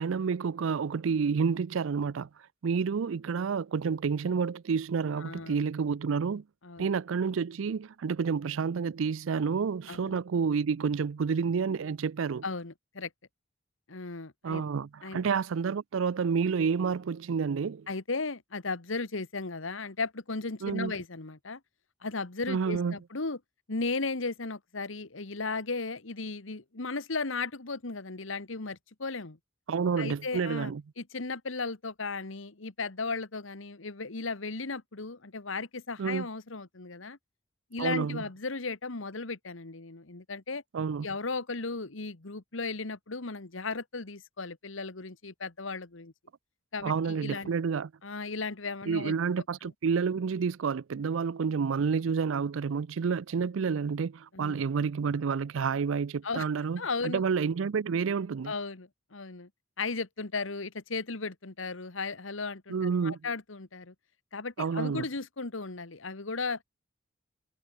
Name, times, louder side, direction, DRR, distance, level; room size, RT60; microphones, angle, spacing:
voice 1, 0.0-2.3 2.6-6.4 6.8-12.4 14.4-17.9 20.6-20.9 22.5-22.9 29.7-30.8 36.0-36.3 37.8-38.2 40.7-41.1 46.8-47.9 48.9-58.5 62.7-63.2 64.6-65.0, right 5 dB, 85° right, 0.4 m, -29 dB
voice 2, 5.2-5.6 6.6-6.9 9.9-10.2 12.4-13.1 13.9-14.6 15.0-15.2 17.9-21.6 22.0-23.4 23.7-29.4 30.0-37.2 37.7-40.6 41.0-46.1 46.7-47.5 48.0-49.1 49.6-49.7 54.3-54.6 56.2-56.5 56.8-57.2 58.4-59.5 59.8-62.7 63.0-63.9 64.3-66.6, left 3 dB, 85° left, 1.6 m, -36 dB
head